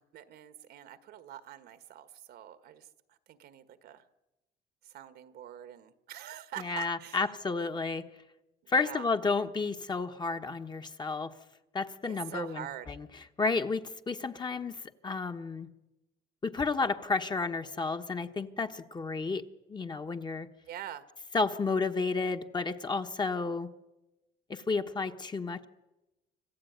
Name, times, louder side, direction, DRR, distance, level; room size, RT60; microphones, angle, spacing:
voice 1, 0.0-4.0 4.8-7.3 8.6-9.1 12.1-13.0 20.6-21.0, right 11 dB, 70° right, 12 dB, 1.5 m, -45 dB
voice 2, 6.6-8.0 8.7-11.3 11.7-13.1 13.4-15.7 16.4-19.4 19.7-20.5 21.3-23.7 24.5-25.7, left 4 dB, 25° left, 6 dB, 1.3 m, -31 dB
26.0 x 15.0 x 9.5 m, 1.0 s
cardioid pair, 110°, 17 cm